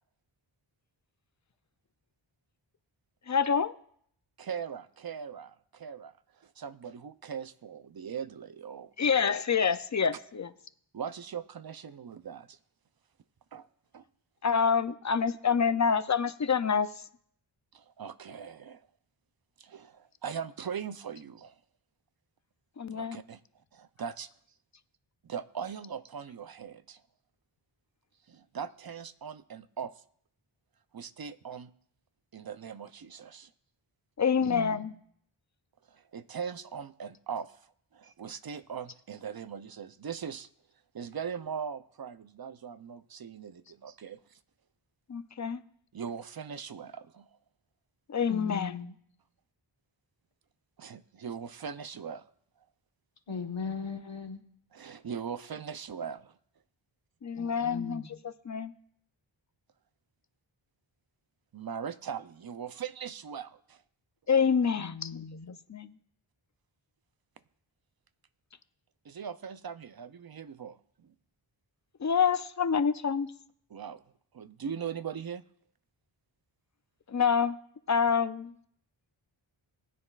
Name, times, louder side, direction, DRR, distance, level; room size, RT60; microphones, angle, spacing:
voice 1, 3.3-3.7 9.0-10.5 14.4-16.9 22.8-23.2 34.2-34.9 45.1-45.6 48.1-48.8 57.2-58.0 58.5-58.7 64.3-65.1 65.7-65.9 72.0-73.3 77.1-77.6 77.9-78.5, left 6 dB, 35° left, 0.5 m, -27 dB
voice 2, 4.4-8.9 10.9-12.6 13.5-13.7 13.9-14.0 17.7-18.9 19.6-21.6 22.9-23.4 23.7-24.3 25.2-27.0 28.3-29.9 30.9-31.7 32.3-33.5 35.9-37.6 37.9-40.5 40.9-44.4 45.9-47.3 50.8-52.2 54.7-56.4 61.5-63.8 69.0-71.1 73.7-74.0 74.3-75.4, right 7 dB, 50° right, 0.6 m, -40 dB
voice 3, 34.5-34.9 48.3-48.9 53.3-54.4 57.4-58.2 64.8-65.6, left 5 dB, 60° left, 1.4 m, -39 dB
20.5 x 10.0 x 2.4 m
wide cardioid pair, 80°, 49 cm